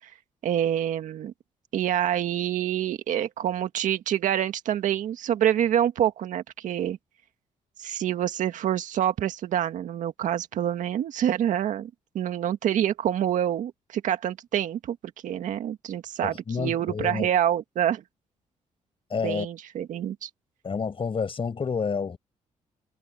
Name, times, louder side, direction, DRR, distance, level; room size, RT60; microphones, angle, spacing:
voice 1, 0.4-1.3 1.7-7.0 7.8-15.0 15.2-18.0 19.2-20.3, right 10 dB, 75° right, 1.9 m, -26 dB
voice 2, 16.2-17.3 19.1-19.5 20.6-22.2, left 5 dB, 45° left, 7.2 m, -29 dB
cardioid pair, 80°, 13 cm